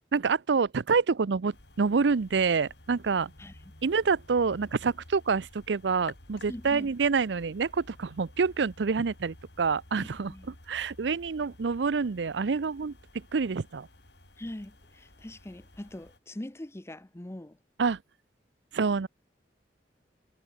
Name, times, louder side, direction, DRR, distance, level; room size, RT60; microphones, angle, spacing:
voice 1, 0.0-3.3 3.8-13.9 17.8-18.0 18.7-19.1, right 5 dB, 75° right, 0.6 m, -27 dB
sound 1, 1.5-16.2, left 1 dB, 70° left, 4.5 m, -53 dB
voice 2, 6.5-6.9 10.0-10.5 14.4-17.6, left 1 dB, 15° left, 0.8 m, -42 dB
head